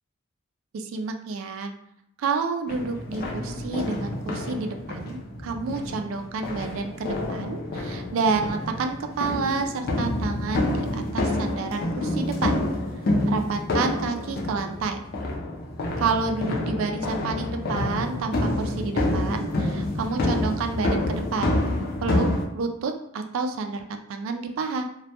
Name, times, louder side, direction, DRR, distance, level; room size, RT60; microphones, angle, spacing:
voice 1, 0.7-1.7 2.2-12.6 13.3-15.0 16.0-21.6 22.0-22.3 22.5-24.9, right 4 dB, 85° right, 5 dB, 0.3 m, -29 dB
sound 1, 2.7-22.4, left 1 dB, 50° left, 0.4 m, -28 dB
2.2 x 2.1 x 2.8 m, 0.74 s
head